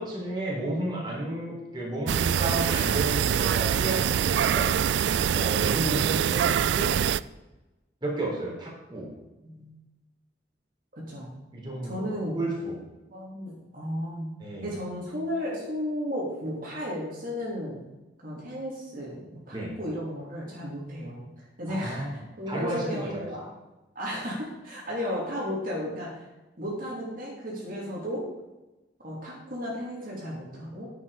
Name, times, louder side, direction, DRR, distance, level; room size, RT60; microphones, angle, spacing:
voice 1, 0.0-4.7 5.3-7.0 8.0-9.1 11.5-12.1 12.3-12.8 14.4-14.7 19.5-19.8 21.7-22.2 22.4-23.3, right 1 dB, 25° right, -4 dB, 3.8 m, -32 dB
sound 1, 2.1-7.2, right 8 dB, 75° right, 0.3 m, -24 dB
voice 2, 9.4-9.7 11.1-11.3 11.8-12.4 13.1-14.3 14.6-17.8 18.2-22.1 22.4-23.4 23.9-26.2 26.6-28.3 29.0-30.9, equal, 50° right, -4 dB, 3.1 m, -34 dB
10.5 x 8.4 x 5.0 m, 1.1 s
head